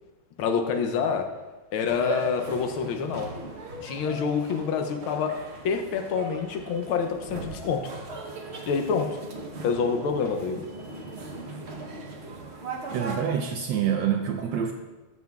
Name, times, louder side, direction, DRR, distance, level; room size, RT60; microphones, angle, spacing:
voice 1, 0.4-1.3 1.7-3.3 3.8-5.4 5.6-7.9 8.7-9.2 9.6-10.7, left 6 dB, 75° left, 6 dB, 1.5 m, -27 dB
sound 1, 1.9-13.2, right 3 dB, 55° right, 0.7 m, -38 dB
voice 2, 12.9-14.7, right 8 dB, 75° right, 4 dB, 1.1 m, -26 dB
11.5 x 7.4 x 2.3 m, 1.2 s
omnidirectional pair, 2.4 m